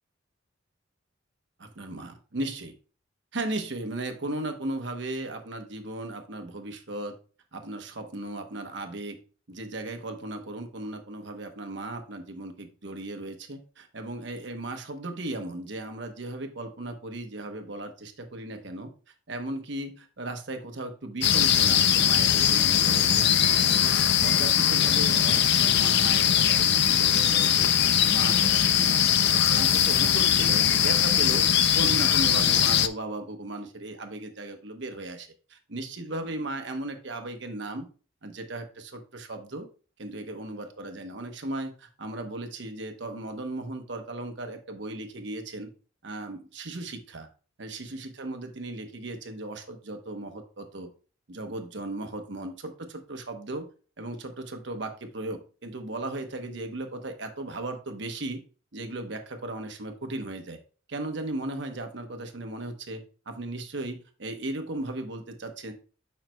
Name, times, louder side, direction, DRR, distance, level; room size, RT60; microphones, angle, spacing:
voice 1, 1.6-2.7 3.3-7.2 7.5-9.2 9.5-18.9 19.3-24.0 24.2-27.7 28.0-31.5 31.7-37.9 38.2-39.7 40.0-45.7 46.0-47.3 47.6-50.9 51.3-53.7 54.0-58.4 58.7-60.6 60.9-65.7, right 2 dB, 65° right, 6 dB, 1.1 m, -36 dB
sound 1, 21.2-32.9, left 9 dB, 60° left, 0.5 m, -21 dB
9.0 x 5.7 x 2.3 m, 0.37 s
head